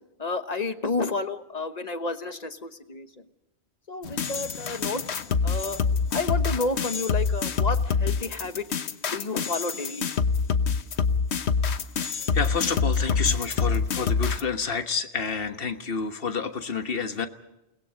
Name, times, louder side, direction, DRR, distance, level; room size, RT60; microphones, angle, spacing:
voice 1, 0.2-3.1 3.9-5.0 5.4-5.8 6.1-8.6 9.1-10.1, left 3 dB, 40° left, 9 dB, 1.3 m, -30 dB
sound 1, 4.0-14.4, left 5 dB, 85° left, 1.3 m, -26 dB
voice 2, 12.3-17.3, left 5 dB, 60° left, 7 dB, 1.6 m, -29 dB
29.5 x 20.5 x 5.1 m, 0.93 s
omnidirectional pair, 1.1 m